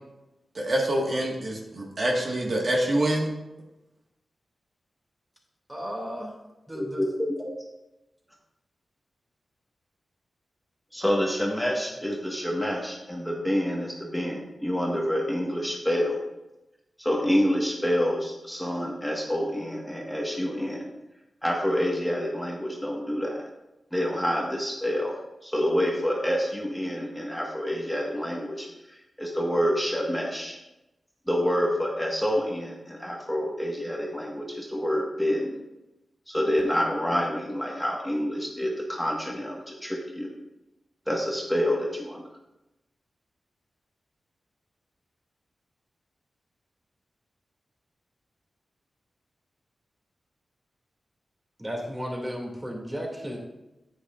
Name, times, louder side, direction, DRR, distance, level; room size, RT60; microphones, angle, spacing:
voice 1, 0.5-3.3, right 1 dB, 50° right, -1 dB, 1.6 m, -26 dB
voice 2, 5.7-6.3 6.7-7.0 51.6-53.4, equal, 20° right, -1 dB, 2.4 m, -34 dB
voice 3, 10.9-16.2 17.0-20.8 21.4-23.3 23.9-25.1 25.4-30.6 31.3-35.5 36.3-40.3 41.1-42.2, equal, 5° left, -2 dB, 1.5 m, -27 dB
9.7 x 8.8 x 2.5 m, 0.97 s
cardioid pair, 75°, 0 cm